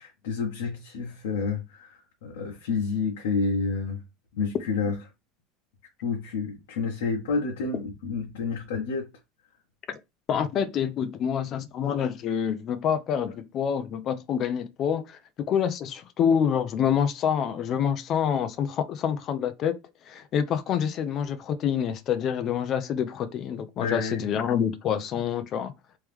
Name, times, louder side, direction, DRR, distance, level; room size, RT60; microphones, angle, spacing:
voice 1, 0.0-4.0 4.3-5.0 6.0-9.1 23.8-24.3, left 4 dB, 85° left, 1.2 m, -29 dB
voice 2, 10.3-19.8 20.1-25.7, left 8 dB, 45° left, 0.5 m, -27 dB
3.1 x 3.1 x 3.5 m
supercardioid pair, 115°, 0 cm